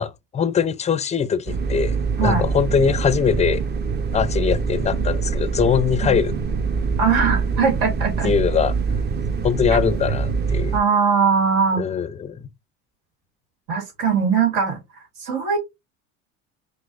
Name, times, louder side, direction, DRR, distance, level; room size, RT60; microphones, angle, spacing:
voice 1, 0.0-3.6 4.1-6.3 8.2-8.7 9.4-10.8 11.8-12.5, left 7 dB, 20° left, 0.4 m, -22 dB
sound 1, 1.5-10.8, right 5 dB, 30° right, 0.6 m, -24 dB
voice 2, 7.0-8.3 9.7-9.8 10.7-11.8 13.7-14.8 15.2-15.6, right 6 dB, 70° right, 1.5 m, -20 dB
6.0 x 2.0 x 2.5 m
supercardioid pair, 85°, 36 cm